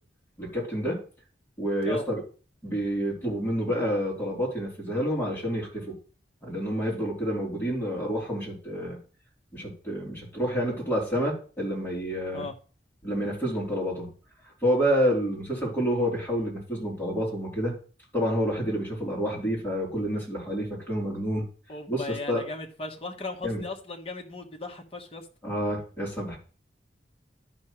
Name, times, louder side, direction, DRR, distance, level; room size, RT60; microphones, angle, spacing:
voice 1, 0.4-1.0 1.6-2.2 2.6-5.9 6.4-9.0 9.5-12.5 13.0-14.1 14.6-17.7 18.1-21.5 21.9-22.4 23.4-23.6 25.4-26.4, equal, 10° left, -5 dB, 3.5 m, -28 dB
voice 2, 21.7-25.3, left 3 dB, 35° left, 3 dB, 1.3 m, -37 dB
11.5 x 5.9 x 3.2 m, 0.39 s
head